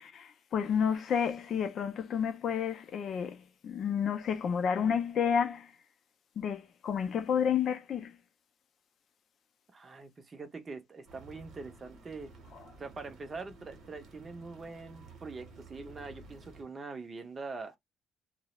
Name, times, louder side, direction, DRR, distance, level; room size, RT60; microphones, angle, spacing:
voice 1, 0.0-5.7 6.4-8.2, left 7 dB, 45° left, 0.4 m, -30 dB
voice 2, 9.7-12.3 12.8-17.8, right 4 dB, 20° right, 0.5 m, -43 dB
sound 1, 11.0-16.6, right 3 dB, 50° right, 0.8 m, -53 dB
2.2 x 2.0 x 2.8 m
cardioid pair, 180°, 0 cm